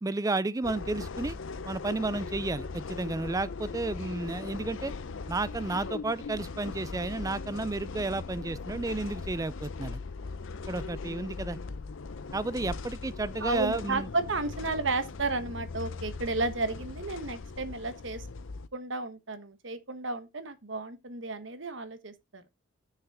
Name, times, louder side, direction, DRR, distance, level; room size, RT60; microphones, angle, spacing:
voice 1, 0.0-1.4 1.7-4.9 5.3-10.0 10.7-11.6 12.3-14.1, right 2 dB, 15° right, 0.4 m, -32 dB
sound 1, 0.6-18.7, left 4 dB, 65° left, 0.6 m, -39 dB
voice 2, 13.4-18.3 18.7-22.4, right 3 dB, 60° right, 1.3 m, -33 dB
7.0 x 6.5 x 4.8 m
head